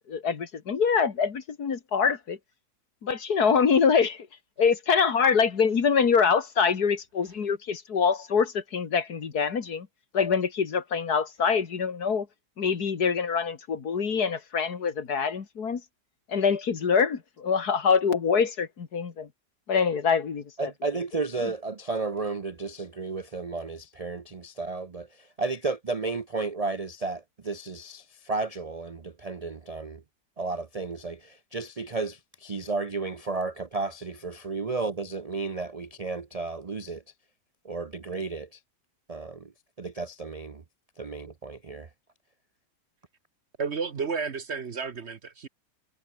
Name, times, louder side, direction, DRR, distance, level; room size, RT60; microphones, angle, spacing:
voice 1, 0.1-2.4 3.0-4.3 4.6-9.9 10.1-12.3 12.6-15.9 16.3-19.3 19.7-21.0 21.4-21.5, left 6 dB, 65° left, 2.4 m, -25 dB
voice 2, 20.6-30.0 30.4-37.0 37.6-38.6 39.1-39.5 39.8-40.6 41.0-41.9, right 3 dB, 70° right, 0.3 m, -33 dB
voice 3, 43.6-45.5, right 5 dB, 45° right, 1.2 m, -32 dB
omnidirectional pair, 1.8 m